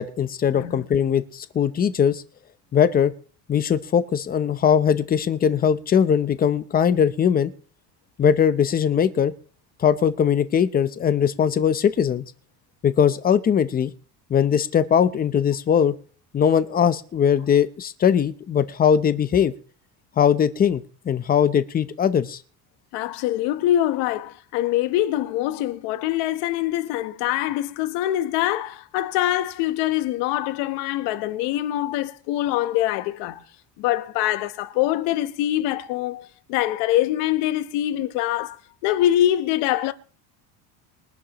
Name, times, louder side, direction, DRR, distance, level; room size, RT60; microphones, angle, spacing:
voice 1, 0.0-2.2 2.7-3.1 3.5-7.5 8.2-9.3 9.8-12.3 12.8-13.9 14.3-15.9 16.3-19.5 20.2-22.4, left 8 dB, 20° left, 0.7 m, -20 dB
voice 2, 0.5-0.8 22.9-33.4 33.8-39.9, left 13 dB, 80° left, 1.2 m, -24 dB
23.0 x 11.0 x 3.0 m
cardioid pair, 160°, 41 cm